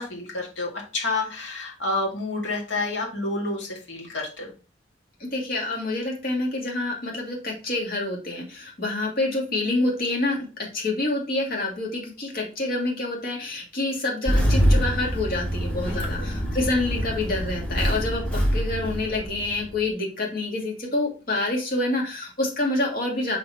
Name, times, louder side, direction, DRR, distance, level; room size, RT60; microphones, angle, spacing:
voice 1, 0.0-4.5 15.9-16.4, left 2 dB, 75° left, -1 dB, 2.2 m, -29 dB
voice 2, 5.2-10.5 10.7-23.4, left 2 dB, 55° left, -1 dB, 2.4 m, -27 dB
Engine starting, 14.3-19.8, equal, 10° left, 1.8 m, -25 dB
5.7 x 4.3 x 4.1 m, 0.33 s
head